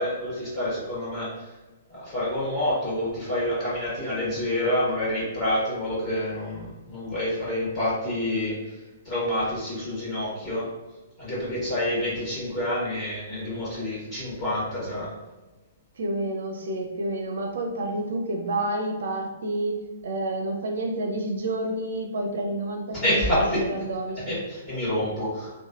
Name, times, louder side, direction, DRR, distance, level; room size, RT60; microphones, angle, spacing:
voice 1, 0.0-1.5 1.9-8.8 9.0-10.7 11.2-15.1 22.9-23.6 24.2-25.5, left 1 dB, 25° left, -9 dB, 1.4 m, -28 dB
voice 2, 16.0-19.8 20.0-24.4, right 1 dB, 60° right, 3 dB, 0.5 m, -29 dB
3.1 x 2.2 x 2.4 m, 1.2 s
figure-of-eight pair, 115°, 0 cm